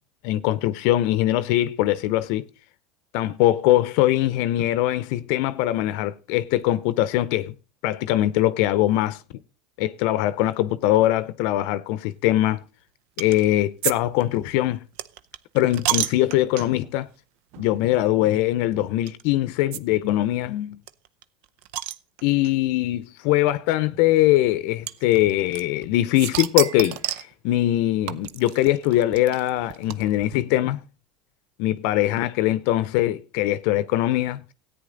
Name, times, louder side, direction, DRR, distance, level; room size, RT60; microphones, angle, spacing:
voice 1, 0.2-2.5 3.1-7.5 7.8-9.2 9.8-12.6 13.2-14.9 15.5-17.1 17.6-20.8 22.2-30.8 31.6-34.4, left 14 dB, 65° left, 0.7 m, -22 dB
sound 1, 13.2-13.5 13.8-13.9 14.2-16.9 17.5-17.7 17.9-18.0 19.1-19.2 19.7-19.8 20.1-20.2 20.4-20.5 20.9-22.5 23.4-23.5 24.9-25.9 26.2-27.3 28.1-30.3, right 13 dB, 65° right, 0.6 m, -30 dB
14.0 x 9.2 x 3.9 m
hypercardioid pair, 85°, 3 cm